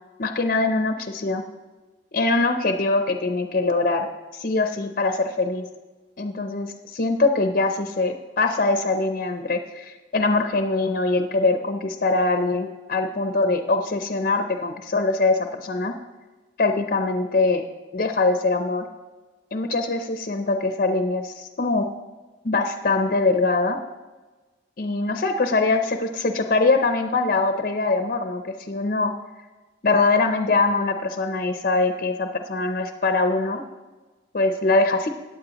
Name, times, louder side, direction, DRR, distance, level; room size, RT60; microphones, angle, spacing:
voice 1, 0.2-1.4 2.1-4.1 4.3-5.7 6.2-15.9 16.6-17.6 17.9-18.9 19.5-21.9 22.4-23.8 24.8-29.1 29.8-33.6 34.3-35.1, left 3 dB, 50° left, 6 dB, 0.6 m, -23 dB
15.5 x 9.0 x 3.0 m, 1.2 s
head